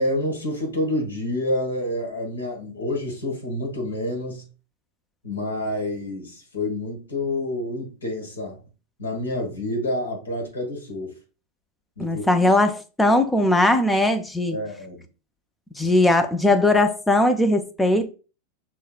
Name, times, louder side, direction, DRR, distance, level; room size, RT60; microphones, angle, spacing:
voice 1, 0.0-4.4 5.2-8.6 9.0-11.1 12.0-12.5 14.5-15.0, left 1 dB, 75° left, 1.5 m, -28 dB
voice 2, 12.0-14.6 15.8-18.1, left 1 dB, 10° left, 0.4 m, -19 dB
6.3 x 2.3 x 2.4 m
figure-of-eight pair, 90°, 0 cm